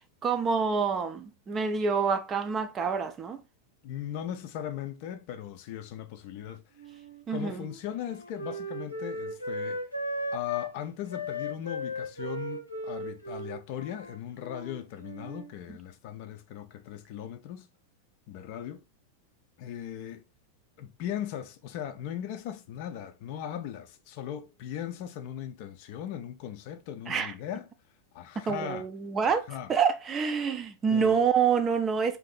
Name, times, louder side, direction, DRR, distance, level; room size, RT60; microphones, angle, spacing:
voice 1, 0.0-3.4 7.3-7.7 27.1-27.3 28.4-32.2, right 6 dB, 25° right, 0.4 m, -27 dB
voice 2, 3.8-6.6 7.3-9.8 10.3-17.7 18.3-18.8 19.6-20.2 20.8-27.7 28.1-28.9 29.5-29.7 30.9-31.2, left 10 dB, 45° left, 0.4 m, -38 dB
Wind instrument woodwind instrument, 6.8-10.7 11.1-15.5, equal, 85° left, 0.7 m, -37 dB
2.7 x 2.5 x 3.7 m
figure-of-eight pair, 90°, 0 cm